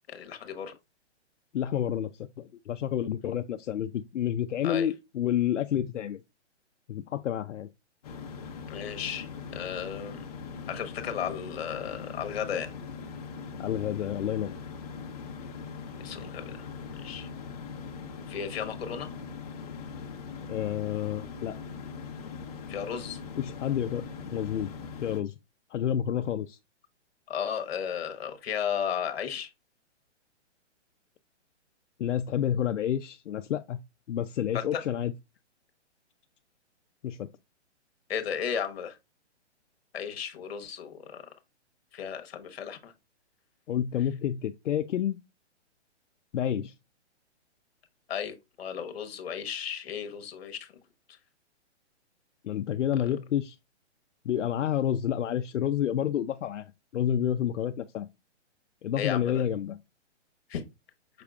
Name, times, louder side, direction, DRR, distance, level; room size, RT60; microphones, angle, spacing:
voice 1, 0.1-0.7 4.6-4.9 8.7-9.3 9.5-10.2 10.7-12.7 16.0-16.7 17.0-17.3 18.3-19.1 22.7-23.2 27.3-29.5 34.5-34.8 38.1-39.0 39.9-41.2 41.9-42.9 48.1-50.6 53.0-53.1 59.0-59.4 60.5-60.6, left 8 dB, 55° left, 1.1 m, -34 dB
voice 2, 1.5-2.1 2.4-6.2 6.9-7.7 13.6-14.5 20.5-21.5 23.4-24.7 25.0-25.3 25.7-26.6 32.0-33.8 34.1-35.1 37.0-37.3 43.7-45.2 46.3-46.7 52.4-53.6 54.2-56.6 56.9-58.1 58.8-59.8, left 10 dB, 85° left, 0.6 m, -29 dB
sound 1, 8.0-25.2, left 5 dB, 35° left, 0.8 m, -41 dB
5.7 x 3.5 x 2.4 m
hypercardioid pair, 165°, 36 cm